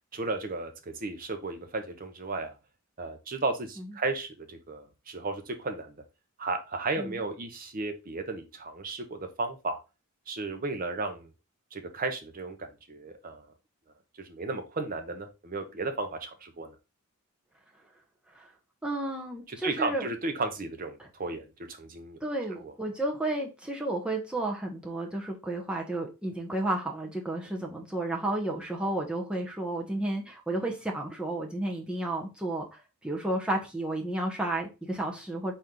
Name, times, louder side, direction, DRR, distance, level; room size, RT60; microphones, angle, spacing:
voice 1, 0.1-2.5 3.0-6.0 6.4-9.8 10.3-11.3 11.7-13.5 14.2-16.8 19.5-22.2 22.6-22.7, right 3 dB, 40° right, 7 dB, 0.7 m, -34 dB
voice 2, 18.8-20.1 21.0-21.1 22.2-35.5, right 1 dB, 5° right, 0 dB, 0.8 m, -32 dB
4.1 x 3.3 x 3.7 m, 0.27 s
head